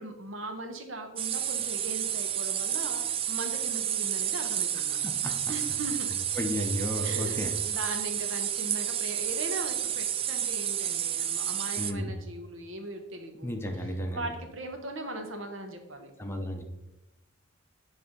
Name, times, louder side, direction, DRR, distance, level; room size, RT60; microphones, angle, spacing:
voice 1, 0.0-5.0 5.5-5.9 7.0-16.1, right 1 dB, 65° right, 5 dB, 1.2 m, -39 dB
sound 1, 1.2-11.9, right 9 dB, 25° right, 0.3 m, -31 dB
voice 2, 5.0-5.3 6.4-7.5 11.8-12.1 13.4-14.3 16.2-16.6, equal, 10° left, 3 dB, 0.8 m, -33 dB
9.5 x 3.5 x 5.3 m, 0.96 s
head